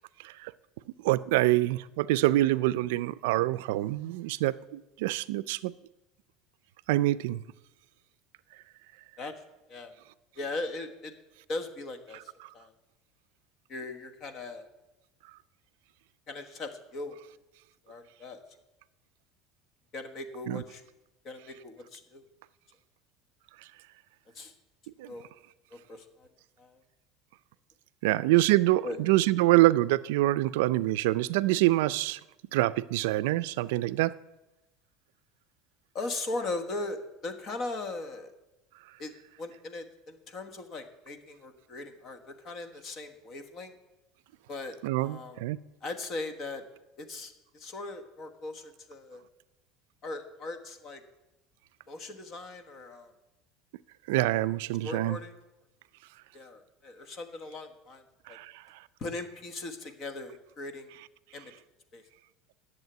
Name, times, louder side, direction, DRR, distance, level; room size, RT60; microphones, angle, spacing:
voice 1, 1.0-5.7 6.9-7.4 12.4-12.5 20.5-20.6 25.0-25.1 28.0-32.2 32.5-34.2 44.8-45.6 54.1-55.2 58.3-58.6, right 17 dB, 85° right, 0.4 m, -26 dB
voice 2, 10.4-11.1 11.5-12.7 13.7-14.7 16.3-17.2 17.9-18.4 19.9-20.8 21.2-22.2 24.3-24.5 25.0-25.3 25.7-26.3 26.6-26.8 28.8-29.0 35.9-38.3 39.0-39.1 39.4-43.7 44.5-45.4 45.8-46.6 47.0-49.2 50.0-51.0 51.9-53.1 54.8-55.3 56.3-58.0 58.3-58.4 59.0-60.9 61.3-61.5 61.9-62.0, left 2 dB, 30° left, 1.3 m, -39 dB
11.0 x 7.4 x 9.2 m
cardioid pair, 175°, 0 cm